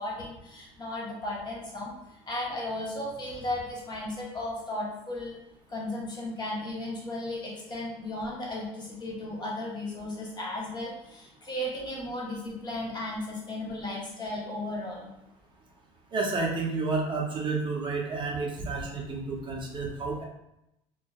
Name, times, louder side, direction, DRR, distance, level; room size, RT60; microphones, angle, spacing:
voice 1, 0.0-1.9 2.3-5.4 5.7-15.1, left 1 dB, 30° left, -3 dB, 0.8 m, -35 dB
voice 2, 16.1-20.2, right 3 dB, 35° right, -1 dB, 0.5 m, -30 dB
2.6 x 2.2 x 2.3 m, 0.86 s
supercardioid pair, 85°, 14 cm